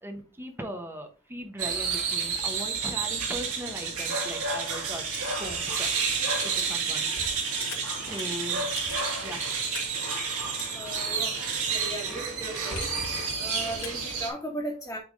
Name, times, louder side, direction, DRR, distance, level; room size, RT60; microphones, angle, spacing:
voice 1, 0.0-5.1 5.4-7.1 8.0-8.9 9.2-9.7, equal, 10° right, 4 dB, 1.0 m, -39 dB
sound 1, 1.6-14.3, right 5 dB, 75° right, 2.4 m, -30 dB
Typing, 5.1-14.0, left 4 dB, 85° left, 2.5 m, -42 dB
voice 2, 10.7-11.4 11.7-12.9 13.4-15.0, right 1 dB, 10° left, -4 dB, 1.4 m, -36 dB
8.5 x 3.5 x 3.9 m, 0.37 s
head